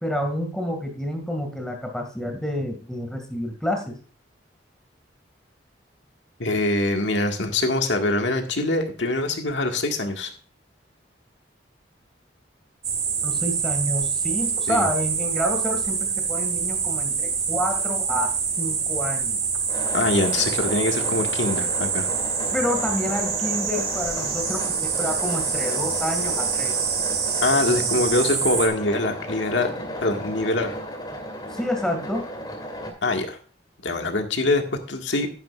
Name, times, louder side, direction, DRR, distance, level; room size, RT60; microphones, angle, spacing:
voice 1, 0.0-4.0 13.2-19.4 22.5-26.7 31.5-32.2, equal, 5° left, 3 dB, 2.0 m, -28 dB
voice 2, 6.4-10.3 14.7-14.9 19.9-22.1 27.4-29.7 30.0-30.8 33.0-33.4 33.8-35.3, left 2 dB, 80° left, 4 dB, 1.7 m, -24 dB
sound 1, 12.8-28.7, right 6 dB, 35° right, 1.9 m, -26 dB
sound 2, 19.7-32.9, equal, 25° left, 2.6 m, -35 dB
11.5 x 10.5 x 2.4 m, 0.40 s
head